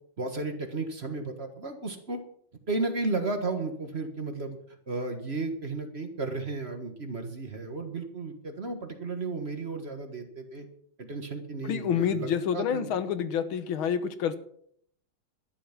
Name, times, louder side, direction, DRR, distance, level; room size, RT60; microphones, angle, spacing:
voice 1, 0.2-2.2 2.7-4.6 4.9-10.7 11.0-12.9, right 3 dB, 35° right, 6 dB, 1.7 m, -33 dB
voice 2, 11.6-14.4, left 8 dB, 90° left, 12 dB, 1.9 m, -28 dB
12.5 x 11.5 x 6.0 m, 0.65 s
omnidirectional pair, 2.2 m